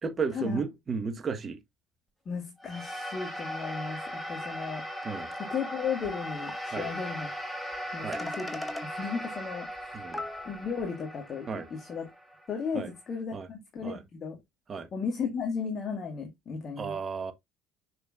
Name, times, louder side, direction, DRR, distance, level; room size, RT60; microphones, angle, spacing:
voice 1, 0.0-1.6 5.0-5.3 6.7-6.9 8.0-8.2 9.9-10.2 11.5-11.7 12.7-12.9 13.3-13.5 13.8-14.0 14.7-14.9 16.8-17.3, right 5 dB, 35° right, 1.6 m, -33 dB
voice 2, 2.3-4.8 5.4-7.3 7.9-8.6 9.0-10.0 10.4-12.0 12.5-14.4 14.9-17.0, left 6 dB, 40° left, 1.8 m, -35 dB
sound 1, 2.6-13.1, equal, ahead, 4.5 m, -38 dB
sound 2, 6.0-6.1 6.5-6.6 7.7-7.8 8.1-8.8 9.8-9.9 10.1-10.8, left 2 dB, 20° left, 1.6 m, -38 dB
6.4 x 6.4 x 2.5 m
figure-of-eight pair, 55°, 0 cm